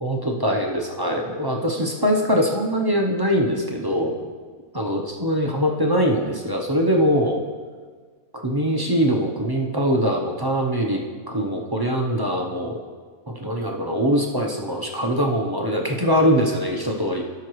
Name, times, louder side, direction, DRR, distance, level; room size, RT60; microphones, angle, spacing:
voice 1, 0.0-4.3 4.7-7.4 8.3-11.0 11.3-12.8 13.3-17.2, equal, 30° right, 1 dB, 0.4 m, -22 dB
17.0 x 5.8 x 3.1 m, 1.5 s
omnidirectional pair, 1.6 m